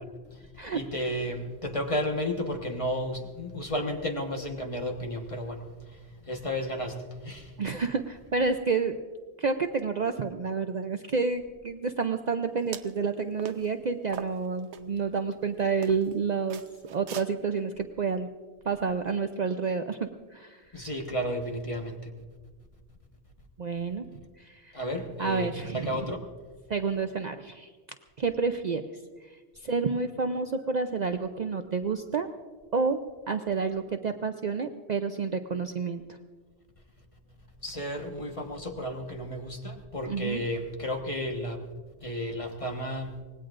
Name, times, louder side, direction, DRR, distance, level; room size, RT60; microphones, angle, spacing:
voice 1, 0.3-7.5 20.7-22.1 24.7-26.2 37.6-41.6 42.0-43.2, equal, 30° left, 2 dB, 1.4 m, -33 dB
voice 2, 7.6-9.0 9.4-16.6 16.9-18.3 18.7-20.9 23.6-24.0 24.4-24.8 25.2-26.1 26.7-27.7 28.2-28.8 29.6-32.3 32.7-33.0 33.3-36.0 40.1-40.4, right 5 dB, 50° right, 7 dB, 0.6 m, -29 dB
sound 1, 12.6-13.0 13.4-13.7 14.1-14.8 15.3-15.4 15.8-16.1 16.5-17.3, right 8 dB, 85° right, 1.0 m, -41 dB
25.0 x 19.5 x 2.5 m, 1.5 s
omnidirectional pair, 1.1 m